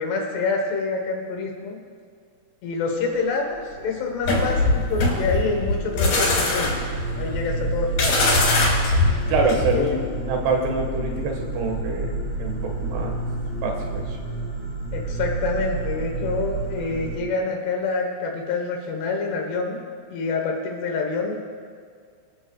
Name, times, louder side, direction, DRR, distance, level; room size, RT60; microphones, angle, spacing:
voice 1, 0.0-1.8 2.6-8.2 9.7-10.0 14.9-19.8 20.1-21.4, left 4 dB, 80° left, 1 dB, 3.3 m, -27 dB
sound 1, 3.5-17.1, right 2 dB, 10° left, 3.3 m, -30 dB
sound 2, 4.2-9.9, left 2 dB, 65° left, 5.3 m, -22 dB
voice 2, 9.3-13.2 13.6-14.2, right 3 dB, 80° right, 2 dB, 3.5 m, -26 dB
26.0 x 11.0 x 2.3 m, 2.1 s
omnidirectional pair, 4.7 m